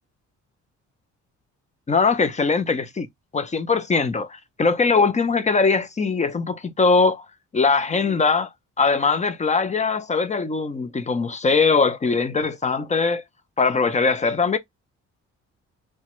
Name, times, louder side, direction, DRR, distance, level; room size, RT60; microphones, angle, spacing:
voice 1, 1.9-3.1 3.3-7.3 7.5-8.5 8.8-13.2 13.6-14.6, left 4 dB, 25° left, 0.5 m, -21 dB
2.9 x 2.2 x 2.9 m
cardioid pair, 90°, 30 cm